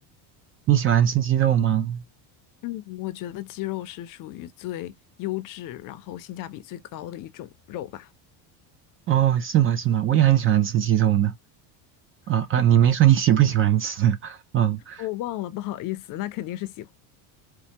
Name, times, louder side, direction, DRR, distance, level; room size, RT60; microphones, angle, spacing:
voice 1, 0.7-2.0 9.1-11.3 12.3-15.0, right 11 dB, 30° right, 0.4 m, -20 dB
voice 2, 2.6-8.1 15.0-16.9, left 15 dB, 50° left, 0.5 m, -34 dB
4.4 x 2.2 x 2.8 m
cardioid pair, 140°, 44 cm